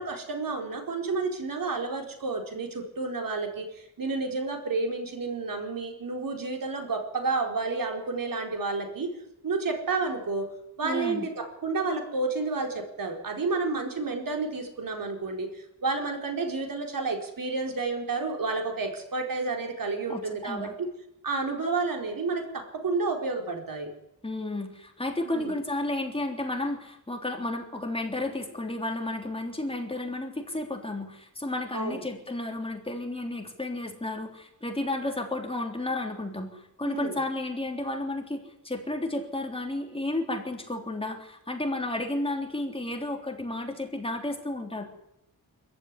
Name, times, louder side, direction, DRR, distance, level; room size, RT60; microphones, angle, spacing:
voice 1, 0.0-9.1 9.4-10.5 10.8-20.9 21.2-23.9 25.2-25.6 31.7-32.0 36.8-37.2, right 3 dB, 70° right, 3 dB, 4.4 m, -30 dB
voice 2, 10.8-11.3 20.1-20.7 24.2-44.8, left 2 dB, 15° left, 2 dB, 3.4 m, -32 dB
26.0 x 14.5 x 9.9 m, 0.84 s
wide cardioid pair, 170°, 34 cm